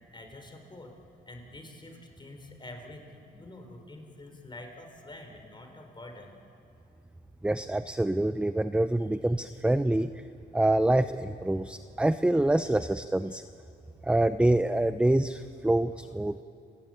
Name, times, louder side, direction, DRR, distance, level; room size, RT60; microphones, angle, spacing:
voice 1, 0.1-0.9 1.3-6.3, left 1 dB, 25° left, 4 dB, 4.7 m, -47 dB
voice 2, 7.4-10.1 10.5-13.4 14.0-16.4, right 1 dB, 5° right, 11 dB, 0.6 m, -26 dB
30.0 x 17.0 x 9.3 m, 2.5 s
cardioid pair, 90°, 20 cm